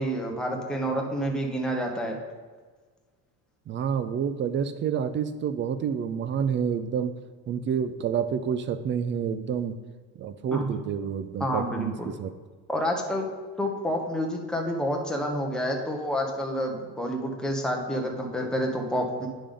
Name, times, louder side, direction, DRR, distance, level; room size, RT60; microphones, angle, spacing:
voice 1, 0.0-2.2 10.5-10.7 11.4-12.1 12.7-13.2 13.6-19.3, equal, ahead, 0 dB, 1.0 m, -28 dB
voice 2, 3.7-7.1 7.5-9.7 10.2-12.3, right 7 dB, 30° right, 12 dB, 0.4 m, -28 dB
9.9 x 5.3 x 3.7 m, 1.4 s
cardioid pair, 130°, 41 cm